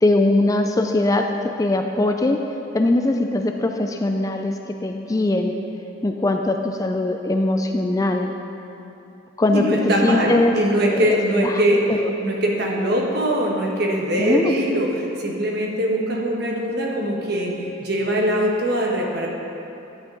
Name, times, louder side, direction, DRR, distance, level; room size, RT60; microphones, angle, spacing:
voice 1, 0.0-2.4 2.7-5.6 6.0-8.3 9.4-9.6 10.0-10.6 10.9-11.2 11.4-12.1 14.2-14.6, left 2 dB, 20° left, 4 dB, 0.3 m, -21 dB
voice 2, 9.5-12.0 12.2-19.3, equal, 55° right, -1 dB, 1.3 m, -22 dB
11.5 x 8.2 x 3.9 m, 2.9 s
head